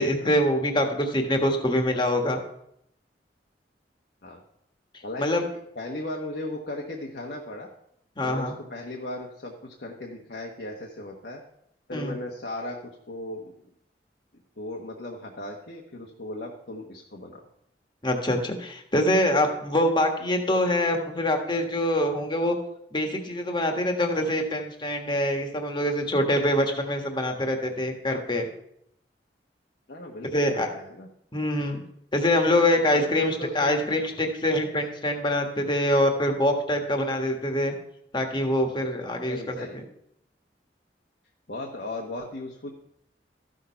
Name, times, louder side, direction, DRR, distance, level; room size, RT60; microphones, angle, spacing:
voice 1, 0.0-2.4 5.2-5.4 8.2-8.5 11.9-12.2 18.0-22.6 22.9-28.4 30.3-30.7 31.3-31.8 32.1-37.7 38.1-39.8, left 1 dB, 25° left, 4 dB, 1.5 m, -24 dB
voice 2, 5.0-5.5 5.7-7.7 8.2-11.4 11.9-12.8 13.1-13.5 14.6-17.5 28.1-28.2 29.9-31.1 32.9-33.7 34.0-34.1 39.3-39.8 41.5-42.7, left 1 dB, 65° left, 0 dB, 1.2 m, -36 dB
14.0 x 6.5 x 5.7 m, 0.76 s
head